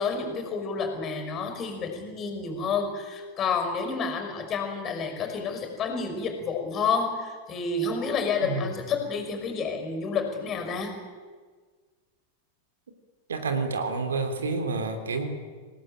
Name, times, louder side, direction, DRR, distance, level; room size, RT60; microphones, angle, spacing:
voice 1, 0.0-11.0, left 5 dB, 30° left, 6 dB, 5.9 m, -29 dB
voice 2, 13.3-15.3, right 4 dB, 65° right, 7 dB, 3.4 m, -29 dB
27.0 x 18.5 x 9.1 m, 1.5 s
figure-of-eight pair, 90°, 0 cm